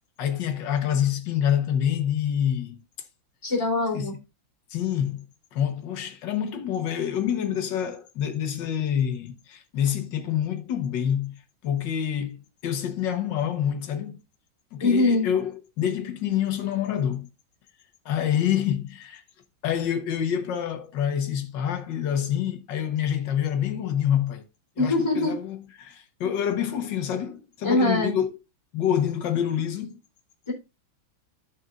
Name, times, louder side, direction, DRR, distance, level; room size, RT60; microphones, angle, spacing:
voice 1, 0.2-2.8 3.9-4.1 4.7-5.3 5.5-14.2 14.7-17.3 18.1-19.2 19.6-24.4 24.8-28.3 28.7-29.9, left 9 dB, 70° left, 1.8 m, -27 dB
voice 2, 3.4-4.1 14.8-15.3 24.8-25.3 27.6-28.1 30.5-30.6, left 2 dB, 15° left, 3.1 m, -23 dB
14.0 x 5.3 x 2.5 m
omnidirectional pair, 2.1 m